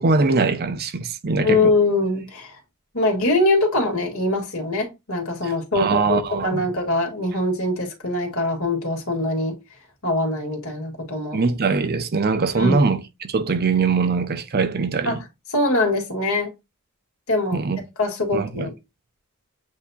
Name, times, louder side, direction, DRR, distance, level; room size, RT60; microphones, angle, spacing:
voice 1, 0.0-1.7 5.4-6.6 11.3-15.2 17.5-17.8 18.3-18.7, right 4 dB, 45° right, 0.6 m, -22 dB
voice 2, 1.4-2.6 2.9-9.6 10.0-11.4 12.6-12.8 15.1-15.2 15.5-16.5 17.3-17.6 18.0-18.7, left 2 dB, 65° left, 2.0 m, -23 dB
8.2 x 2.8 x 2.3 m
head